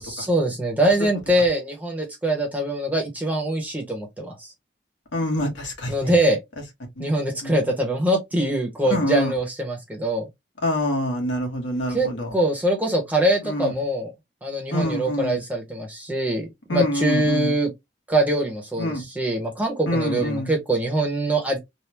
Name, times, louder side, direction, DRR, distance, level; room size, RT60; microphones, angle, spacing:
voice 1, 0.0-4.5 5.9-6.4 7.0-10.3 11.9-14.1 14.4-17.7 18.1-21.6, right 1 dB, 10° right, 0.9 m, -23 dB
voice 2, 5.1-5.9 7.0-7.1 7.4-7.5 8.9-9.3 10.6-12.3 13.4-13.7 14.7-15.4 16.7-17.5 18.8-19.0 19.9-20.5, equal, 75° left, 1.4 m, -25 dB
3.4 x 2.2 x 2.8 m
head